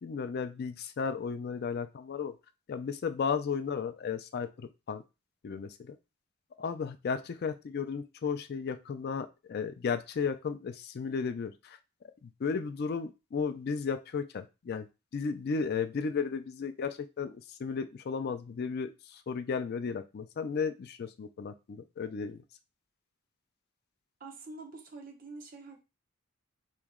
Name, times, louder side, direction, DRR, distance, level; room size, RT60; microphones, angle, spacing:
voice 1, 0.0-2.3 2.7-5.0 5.4-6.0 6.6-11.8 12.2-14.9 15.1-22.4, left 5 dB, 45° left, 11 dB, 0.3 m, -34 dB
voice 2, 24.2-25.8, right 3 dB, 40° right, 2 dB, 0.9 m, -46 dB
4.3 x 3.0 x 3.6 m, 0.27 s
head